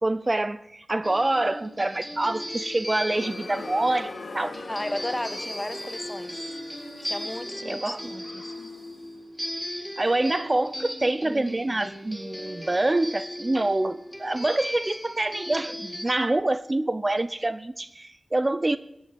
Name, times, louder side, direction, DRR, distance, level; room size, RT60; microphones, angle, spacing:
voice 1, 0.0-4.5 7.7-8.0 10.0-18.8, right 2 dB, 30° right, 15 dB, 0.6 m, -26 dB
sound 1, 1.0-16.1, equal, ahead, 2.4 m, -37 dB
sound 2, 3.1-9.0, left 3 dB, 70° left, 2.4 m, -42 dB
voice 2, 4.7-6.6 7.0-8.5, left 1 dB, 20° left, 12 dB, 1.3 m, -34 dB
14.0 x 8.8 x 9.3 m, 0.81 s
cardioid pair, 50°, 0 cm